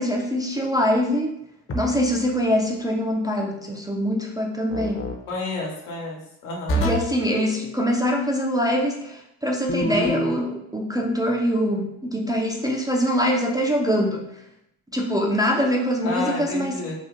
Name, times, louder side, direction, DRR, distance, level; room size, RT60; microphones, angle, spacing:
voice 1, 0.0-1.4 1.7-5.0 6.8-14.3 14.9-16.8, equal, 10° right, -1 dB, 0.3 m, -23 dB
sound 1, 1.7-2.2 4.7-5.2 6.7-7.2 9.7-10.4, equal, 30° left, 0.6 m, -26 dB
voice 2, 5.3-6.8 16.0-16.9, left 2 dB, 80° left, -2 dB, 1.1 m, -30 dB
2.7 x 2.4 x 3.6 m, 0.79 s
hypercardioid pair, 60°, 46 cm